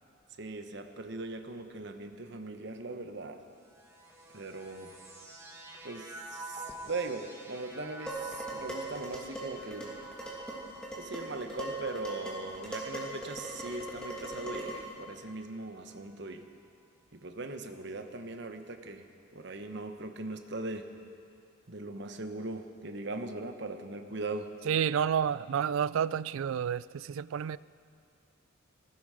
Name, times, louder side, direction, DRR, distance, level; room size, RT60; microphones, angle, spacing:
voice 1, 0.4-3.4 4.3-4.9 5.8-10.0 11.0-16.5 17.1-20.9 21.7-24.5, right 2 dB, 55° right, 6 dB, 1.0 m, -40 dB
sound 1, 3.5-15.0 15.7-16.5, right 1 dB, 15° right, 1.7 m, -49 dB
Dishes pots and pans, 8.1-14.9, right 1 dB, 5° left, 2.5 m, -40 dB
voice 2, 24.7-27.6, right 8 dB, 75° right, 19 dB, 0.3 m, -30 dB
18.5 x 15.5 x 5.0 m, 2.4 s
head